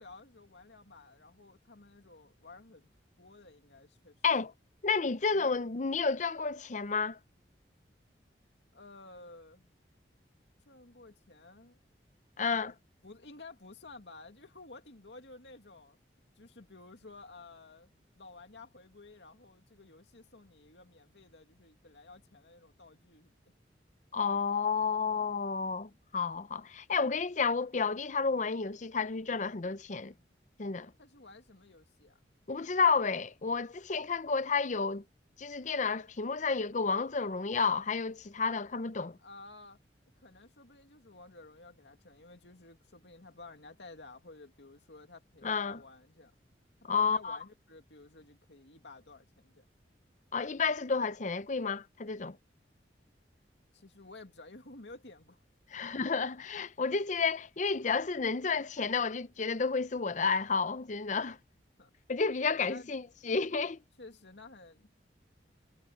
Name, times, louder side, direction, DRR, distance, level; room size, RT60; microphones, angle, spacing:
voice 1, 0.0-2.9 3.2-4.2 5.3-5.5 8.7-9.7 10.7-11.8 13.0-16.0 16.4-23.4 31.0-32.2 39.2-39.8 40.2-46.3 46.9-49.6 53.7-55.4 56.9-57.0 61.8-61.9 62.5-62.9 64.0-64.9, left 3 dB, 85° left, 2.3 m, -53 dB
voice 2, 4.8-7.2 12.4-12.7 24.1-30.1 30.6-30.9 32.5-35.0 35.4-39.2 45.4-45.8 46.8-47.4 50.3-52.4 55.7-61.4 62.1-63.8, left 5 dB, 45° left, 0.7 m, -31 dB
head